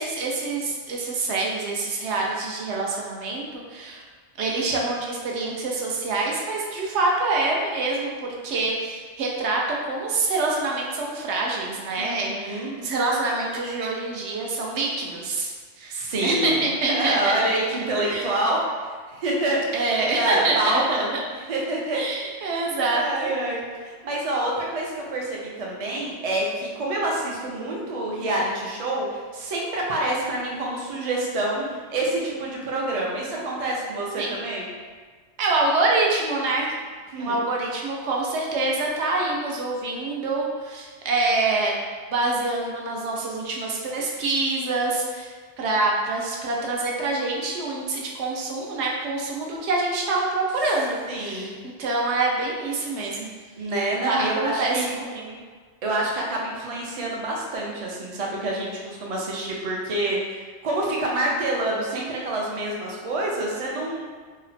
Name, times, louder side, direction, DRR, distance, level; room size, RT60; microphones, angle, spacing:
voice 1, 0.0-4.0 4.4-17.4 18.0-18.3 19.7-20.8 21.9-23.3 34.2-34.4 35.4-36.7 37.2-41.7 42.1-51.5 51.8-53.3 54.1-55.4, right 3 dB, 75° right, -2 dB, 0.9 m, -26 dB
voice 2, 11.9-12.7 15.9-19.8 20.2-21.2 21.5-22.0 22.4-22.5 22.8-34.7 37.1-37.4 51.1-51.5 53.6-55.0 55.8-64.0, right 1 dB, 45° right, -3 dB, 0.5 m, -27 dB
2.8 x 2.0 x 4.0 m, 1.5 s
omnidirectional pair, 1.2 m